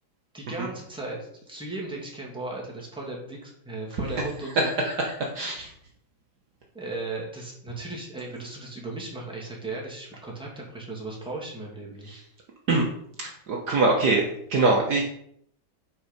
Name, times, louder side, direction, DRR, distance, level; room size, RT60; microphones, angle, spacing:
voice 1, 0.3-4.7 6.7-12.2, right 2 dB, ahead, -3 dB, 2.1 m, -36 dB
voice 2, 5.3-5.7 12.7-12.9 13.2-14.2 14.5-15.0, right 3 dB, 55° right, 0 dB, 1.6 m, -23 dB
9.3 x 4.6 x 5.3 m, 0.69 s
omnidirectional pair, 2.2 m